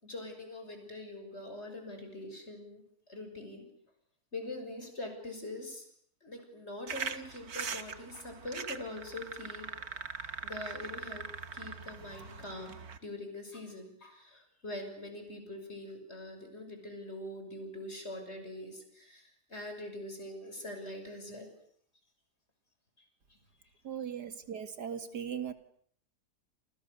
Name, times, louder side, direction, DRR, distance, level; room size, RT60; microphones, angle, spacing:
voice 1, 0.0-2.8 3.1-3.7 4.3-5.9 6.2-9.7 10.4-11.3 11.5-21.5 23.3-23.4, left 1 dB, 40° left, 5 dB, 6.8 m, -43 dB
sound 1, 6.9-13.0, right 6 dB, 65° right, 2.0 m, -41 dB
voice 2, 23.8-25.5, right 8 dB, 85° right, 9 dB, 2.5 m, -38 dB
29.0 x 29.0 x 6.8 m, 0.65 s
omnidirectional pair, 1.7 m